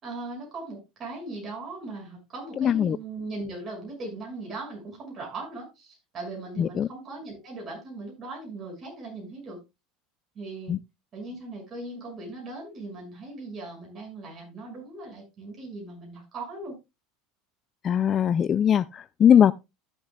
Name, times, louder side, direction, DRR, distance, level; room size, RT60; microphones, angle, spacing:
voice 1, 0.0-9.6 10.3-10.8 11.1-16.7, right 2 dB, 40° right, 6.2 m, -39 dB
voice 2, 2.6-3.0 6.6-6.9 10.7-10.8 17.8-19.5, left 9 dB, 40° left, 0.4 m, -20 dB
14.5 x 7.1 x 2.3 m
hypercardioid pair, 80°, 0 cm